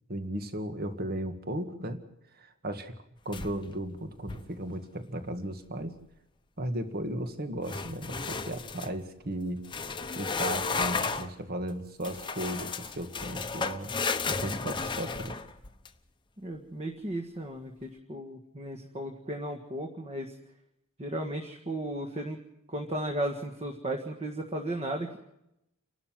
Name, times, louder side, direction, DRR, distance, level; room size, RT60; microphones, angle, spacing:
voice 1, 0.1-2.0 2.3-3.0 3.3-6.0 6.6-9.7 10.2-13.9 14.3-15.4, right 1 dB, 45° right, 8 dB, 1.9 m, -35 dB
sound 1, 3.3-3.8 4.2-4.6 7.6-8.9 9.7-11.3 12.0-15.9, left 4 dB, 20° left, 1.0 m, -33 dB
voice 2, 16.4-20.3 21.0-22.4 22.7-25.2, right 1 dB, 30° right, 3 dB, 1.8 m, -35 dB
29.5 x 12.5 x 7.6 m, 0.84 s
head